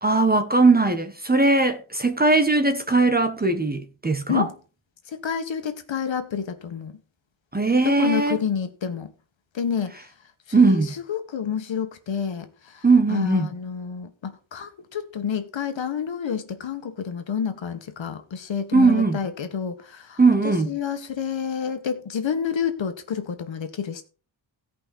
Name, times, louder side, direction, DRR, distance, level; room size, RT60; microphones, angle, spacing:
voice 1, 0.0-4.5 7.5-8.4 10.5-10.9 12.8-13.5 18.7-19.2 20.2-20.7, right 3 dB, 20° right, 1.2 m, -19 dB
voice 2, 5.1-6.9 7.8-9.1 9.5-9.9 10.5-24.0, left 7 dB, 65° left, 1.8 m, -29 dB
16.5 x 5.6 x 4.1 m
cardioid pair, 95°, 48 cm